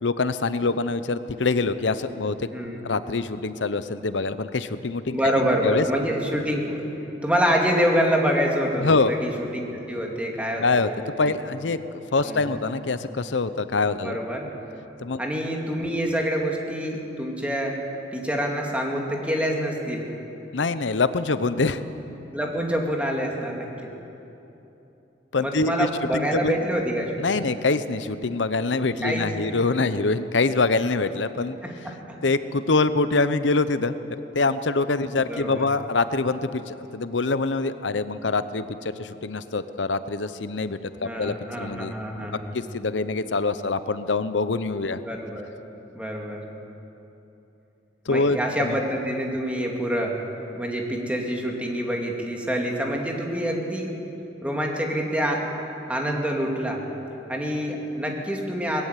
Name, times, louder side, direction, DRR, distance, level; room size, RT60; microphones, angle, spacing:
voice 1, 0.0-2.5 2.8-5.3 5.6-5.8 8.8-9.1 10.6-10.9 11.2-14.2 15.0-15.2 20.5-21.8 25.3-26.6 27.2-31.6 32.2-34.0 34.3-41.9 42.5-45.0 48.1-48.8, left 3 dB, 90° left, 12 dB, 0.8 m, -25 dB
voice 2, 2.5-2.9 5.1-6.9 7.2-11.1 12.2-12.6 14.0-14.5 15.2-17.8 18.1-20.1 22.3-23.9 25.4-27.4 29.0-29.5 31.6-32.2 35.0-35.7 41.0-42.5 45.0-45.5 45.9-46.5 48.1-50.2 50.5-53.9 54.4-55.5 55.9-56.8 57.3-58.9, equal, 10° right, 0 dB, 2.3 m, -26 dB
19.5 x 15.0 x 9.2 m, 3.0 s
head